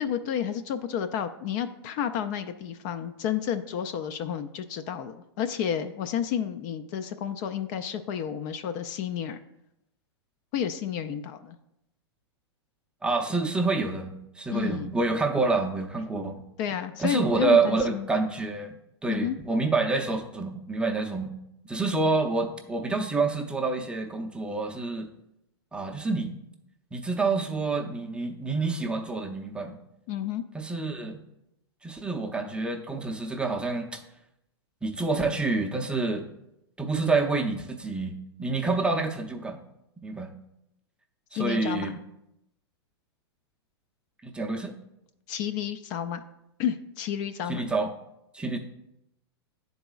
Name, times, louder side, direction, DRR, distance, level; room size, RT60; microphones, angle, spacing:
voice 1, 0.0-9.4 10.5-11.6 14.5-14.9 16.6-18.1 19.1-19.4 30.1-30.4 41.3-41.9 45.3-46.2 46.6-47.6, left 9 dB, 45° left, 9 dB, 0.4 m, -31 dB
voice 2, 13.0-16.4 17.0-18.8 19.0-21.3 21.7-25.1 25.7-26.3 26.9-29.8 30.5-31.2 31.8-34.0 34.8-36.3 36.8-39.6 40.0-40.3 41.3-42.0 44.2-44.7 47.5-47.9 48.3-48.6, right 3 dB, 5° right, 2 dB, 0.5 m, -27 dB
10.0 x 4.0 x 2.3 m, 0.84 s
hypercardioid pair, 110°, 14 cm